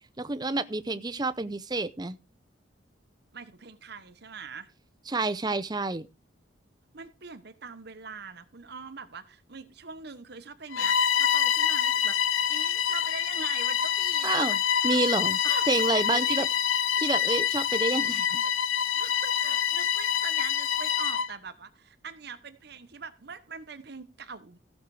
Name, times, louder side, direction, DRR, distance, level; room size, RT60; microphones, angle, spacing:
voice 1, 0.2-2.2 5.1-6.1 14.2-14.6 14.8-15.4 15.7-16.5 17.0-18.4, right 2 dB, 20° right, 0.6 m, -28 dB
voice 2, 3.3-4.7 6.9-12.2 12.5-14.6 14.8-15.0 15.4-15.7 16.1-16.5 19.0-24.6, right 5 dB, 55° right, 1.0 m, -42 dB
Bowed string instrument, 10.7-21.3, left 9 dB, 85° left, 0.6 m, -26 dB
15.0 x 6.5 x 4.8 m
head